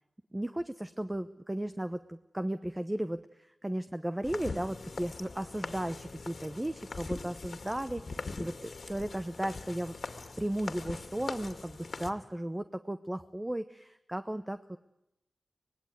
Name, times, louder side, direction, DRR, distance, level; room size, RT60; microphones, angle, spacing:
voice 1, 0.3-10.0 10.4-14.8, right 1 dB, 15° right, 11 dB, 0.9 m, -35 dB
sound 1, 4.2-12.1, left 3 dB, 55° left, 2.1 m, -42 dB
25.0 x 19.5 x 9.3 m, 0.87 s
wide cardioid pair, 100°, 0 cm